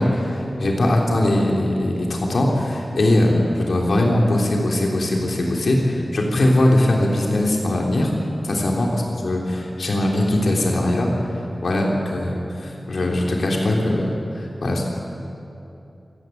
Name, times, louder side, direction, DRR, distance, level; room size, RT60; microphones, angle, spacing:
voice 1, 0.0-8.1 8.4-14.8, left 1 dB, 80° left, -1 dB, 3.4 m, -21 dB
26.5 x 15.0 x 9.3 m, 2.8 s
wide cardioid pair, 95°, 0 cm